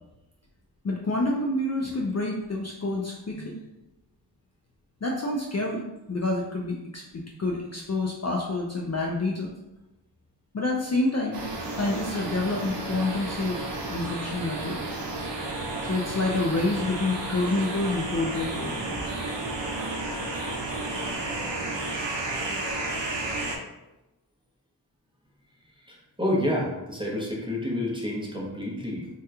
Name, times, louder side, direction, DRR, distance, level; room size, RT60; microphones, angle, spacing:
voice 1, 0.8-3.6 5.0-9.5 10.5-11.4 11.8-14.8 15.8-18.8, left 2 dB, 40° left, -2 dB, 0.4 m, -28 dB
sound 1, 11.3-23.6, right 2 dB, 75° right, 0.6 m, -32 dB
voice 2, 25.8-29.1, left 1 dB, 10° right, -3 dB, 0.8 m, -29 dB
2.9 x 2.3 x 3.4 m, 0.96 s
wide cardioid pair, 65°, 44 cm